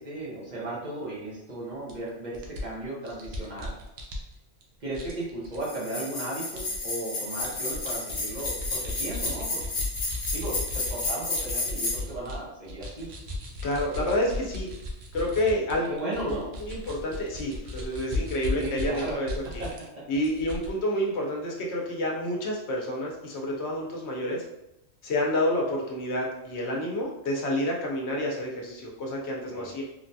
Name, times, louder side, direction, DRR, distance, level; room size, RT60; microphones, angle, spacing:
voice 1, 0.0-3.7 4.8-9.9 10.3-13.1 15.9-16.5 18.5-19.2 19.4-19.7 19.9-20.0 29.5-29.7, right 2 dB, 45° right, -6 dB, 0.9 m, -35 dB
sound 1, 1.9-2.0 2.3-4.6 4.9-5.6 6.6-6.8 7.2-12.4 12.6-19.9 20.1-20.7, left 2 dB, 70° right, 0.8 m, -36 dB
sound 2, 5.6-12.0, left 2 dB, 55° left, 0.9 m, -32 dB
voice 2, 13.6-14.7 15.1-19.6 20.1-24.4 25.0-29.8, left 1 dB, 80° left, -1 dB, 1.0 m, -29 dB
3.3 x 2.2 x 2.6 m, 0.87 s
omnidirectional pair, 1.1 m